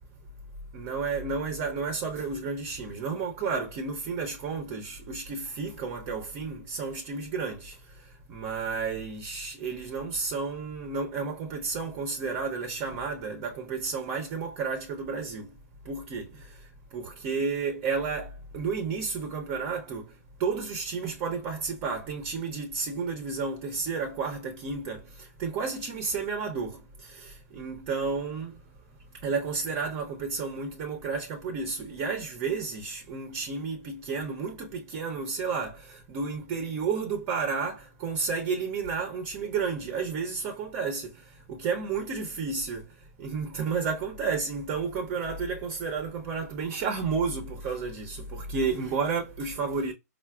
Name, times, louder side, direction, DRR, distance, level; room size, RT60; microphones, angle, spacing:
voice 1, 0.7-7.7 8.3-15.5 15.9-16.3 16.9-20.0 20.4-25.0 25.4-26.8 27.0-28.5 29.2-41.1 41.5-42.8 43.2-49.9, right 5 dB, 35° right, 0.7 m, -31 dB
4.7 x 2.0 x 2.3 m
hypercardioid pair, 135°, 10 cm